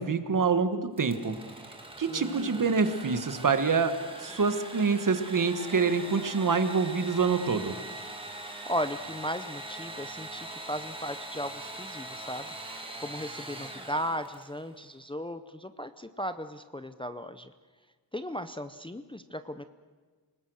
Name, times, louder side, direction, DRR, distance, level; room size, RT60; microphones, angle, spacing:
voice 1, 0.0-1.3 2.0-7.8, right 5 dB, 45° right, 10 dB, 1.5 m, -26 dB
Engine / Sawing, 0.9-14.6, right 2 dB, 10° right, 2.4 m, -42 dB
voice 2, 2.1-2.7 8.7-17.5 18.1-19.6, equal, 10° left, 10 dB, 0.6 m, -36 dB
28.0 x 19.5 x 6.4 m, 1.4 s
wide cardioid pair, 170°, 43 cm